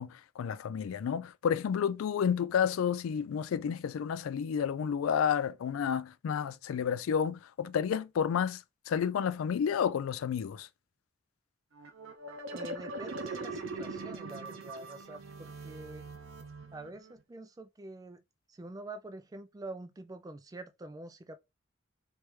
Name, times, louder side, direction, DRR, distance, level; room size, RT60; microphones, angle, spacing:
voice 1, 0.0-10.7, left 7 dB, 85° left, 0.3 m, -31 dB
sound 1, 11.7-17.1, right 3 dB, 75° right, 0.6 m, -41 dB
voice 2, 12.5-16.1 16.7-18.2 18.5-21.4, right 2 dB, 15° right, 0.3 m, -46 dB
3.3 x 3.1 x 3.1 m
head